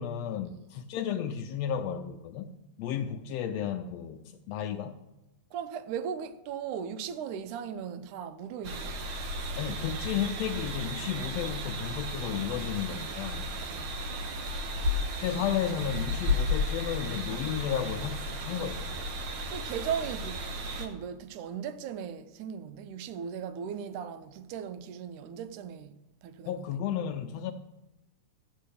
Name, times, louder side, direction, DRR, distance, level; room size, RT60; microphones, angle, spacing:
voice 1, 0.0-2.5 2.8-5.0 9.6-13.5 15.2-18.9 26.5-27.5, left 9 dB, 80° left, 1.5 m, -33 dB
voice 2, 5.5-9.0 13.7-13.9 19.5-20.4 20.8-26.7, right 8 dB, 90° right, 2.2 m, -37 dB
sound 1, 8.6-20.9, left 1 dB, 60° right, 1.5 m, -34 dB
14.0 x 6.7 x 6.7 m
omnidirectional pair, 3.4 m